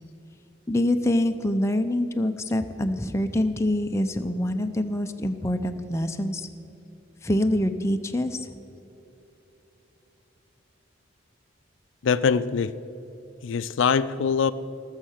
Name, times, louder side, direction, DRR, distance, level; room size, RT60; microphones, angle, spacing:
voice 1, 0.7-6.5 7.2-8.5, left 1 dB, 15° left, 0.5 m, -25 dB
voice 2, 12.0-12.8 13.4-14.5, left 6 dB, 70° left, 0.4 m, -23 dB
19.5 x 6.5 x 6.4 m
head